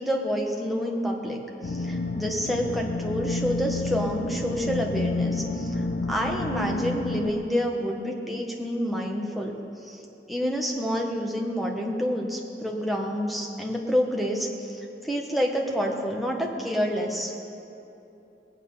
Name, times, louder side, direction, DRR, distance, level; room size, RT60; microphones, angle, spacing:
voice 1, 0.0-5.7 6.1-9.6 9.9-10.0 10.3-17.3, equal, ahead, -1 dB, 1.2 m, -28 dB
sound 1, 1.6-7.3, left 2 dB, 50° left, 0.5 m, -30 dB
19.5 x 8.6 x 5.6 m, 2.8 s
head